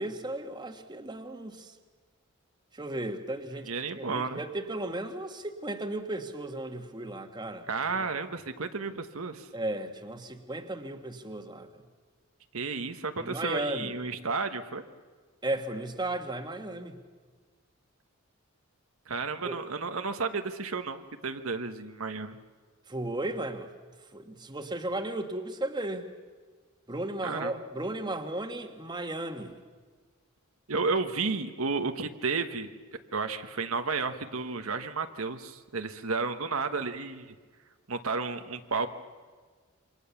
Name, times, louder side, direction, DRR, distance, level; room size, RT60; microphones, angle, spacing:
voice 1, 0.0-1.8 2.7-3.7 4.0-8.1 9.5-11.8 13.2-13.9 15.4-17.0 19.4-19.6 22.9-23.7 24.1-26.1 26.9-29.5, right 1 dB, 20° right, 6 dB, 1.5 m, -35 dB
voice 2, 3.7-4.4 7.7-9.5 12.5-14.8 19.1-22.4 27.2-27.5 30.7-32.7 33.1-37.3 37.9-38.9, right 4 dB, 85° right, 7 dB, 1.3 m, -32 dB
28.0 x 24.0 x 7.1 m, 1.5 s
head